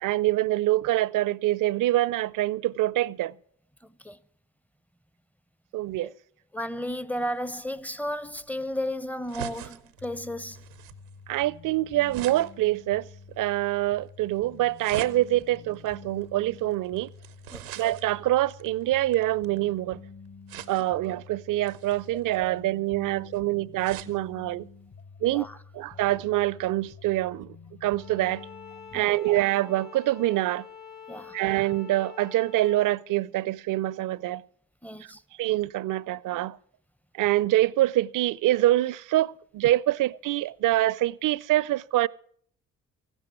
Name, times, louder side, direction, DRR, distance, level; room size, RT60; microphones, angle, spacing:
voice 1, 0.0-3.3 5.7-6.1 11.3-13.1 13.4-17.1 17.8-20.0 20.7-24.7 25.2-25.5 25.7-27.6 27.8-28.5 28.9-30.7 31.3-34.4 35.4-36.6 37.1-42.1, right 15 dB, 50° right, 0.5 m, -25 dB
voice 2, 3.8-4.2 6.0-6.1 6.5-10.6 17.5-17.8 25.3-25.6 28.9-29.2 31.1-31.4 34.8-35.2, equal, 5° left, 0.6 m, -34 dB
sound 1, 7.2-19.8 20.5-21.1 21.6-24.2 24.6-24.7 25.0-25.1, right 12 dB, 85° right, 0.7 m, -44 dB
sound 2, 10.0-29.0, left 5 dB, 40° left, 1.1 m, -49 dB
Bowed string instrument, 28.0-33.0, left 7 dB, 80° left, 1.2 m, -46 dB
15.0 x 11.5 x 6.1 m
hypercardioid pair, 45°, 41 cm